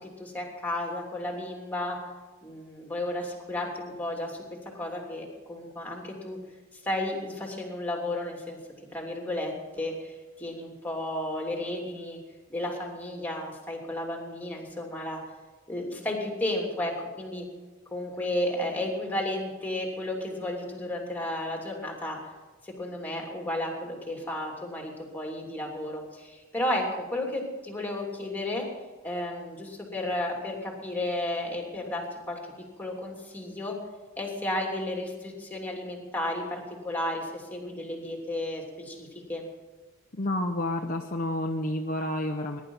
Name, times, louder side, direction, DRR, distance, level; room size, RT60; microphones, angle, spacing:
voice 1, 0.0-2.0 2.4-4.4 4.7-6.4 6.8-8.6 8.9-12.2 12.5-15.2 15.7-17.5 17.9-22.2 22.6-28.7 29.0-32.4 32.8-33.8 34.2-39.4, left 1 dB, 10° left, 0 dB, 3.0 m, -33 dB
voice 2, 40.1-42.6, left 1 dB, 40° left, 1 dB, 0.9 m, -30 dB
21.0 x 11.5 x 5.6 m, 1.2 s
head